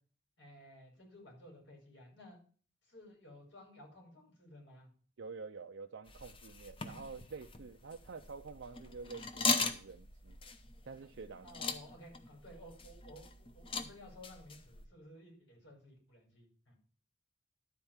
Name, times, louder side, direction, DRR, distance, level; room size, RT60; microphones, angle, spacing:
voice 1, 0.4-2.4 2.8-4.9 11.4-16.7, left 1 dB, 80° left, 0 dB, 5.2 m, -55 dB
voice 2, 5.2-10.4 10.8-11.5, right 4 dB, 80° right, 6 dB, 0.5 m, -48 dB
sound 1, 6.1-14.9, left 4 dB, 30° left, 0.8 m, -40 dB
12.0 x 4.5 x 7.2 m, 0.43 s
head